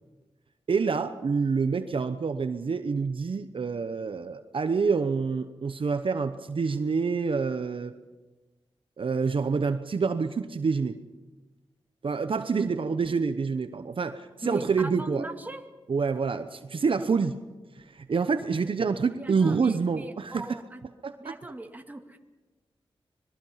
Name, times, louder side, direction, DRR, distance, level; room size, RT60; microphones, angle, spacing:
voice 1, 0.7-7.9 9.0-11.0 12.0-15.3 15.9-17.4 17.8-20.5 21.0-21.3, right 5 dB, 60° right, 9 dB, 0.9 m, -27 dB
voice 2, 12.6-13.1 14.4-15.6 19.1-20.8 21.2-22.2, right 2 dB, 15° right, 5 dB, 2.0 m, -40 dB
25.5 x 20.5 x 5.8 m, 1.2 s
wide cardioid pair, 75°, 10 cm